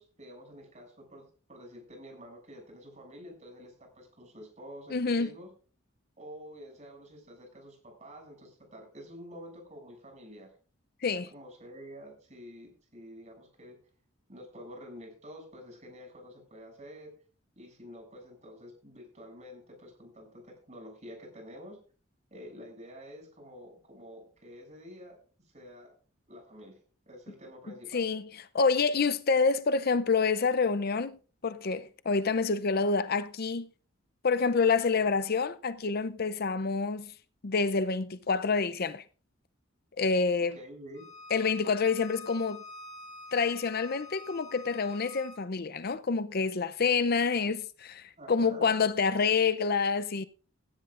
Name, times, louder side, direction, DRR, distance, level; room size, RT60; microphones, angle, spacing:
voice 1, 0.0-5.5 6.2-10.6 11.1-13.8 14.3-17.1 17.6-21.8 22.3-25.2 25.5-25.9 26.3-26.8 27.1-28.1 40.5-41.1 48.2-48.7, equal, 35° right, 7.2 m, -48 dB
voice 2, 4.9-5.3 11.0-11.3 27.9-33.7 34.2-37.1 37.4-39.0 40.0-40.5 41.3-42.6 43.3-50.2, left 4 dB, 50° left, 0.6 m, -27 dB
Bowed string instrument, 40.9-45.4, left 4 dB, 35° left, 2.9 m, -47 dB
16.5 x 15.5 x 2.5 m
head